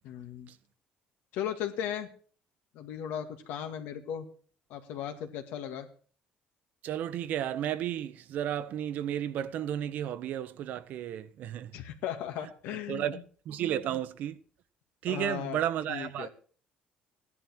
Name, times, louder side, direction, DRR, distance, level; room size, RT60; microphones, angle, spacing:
voice 1, 0.0-0.5 1.3-2.1 2.7-4.3 4.7-5.9 11.7-13.2 15.1-16.3, left 9 dB, 85° left, 2.2 m, -37 dB
voice 2, 6.8-11.8 12.9-13.2 13.4-14.4 15.0-16.3, right 10 dB, 65° right, 1.0 m, -33 dB
16.0 x 11.0 x 4.5 m
cardioid pair, 135°, 3 cm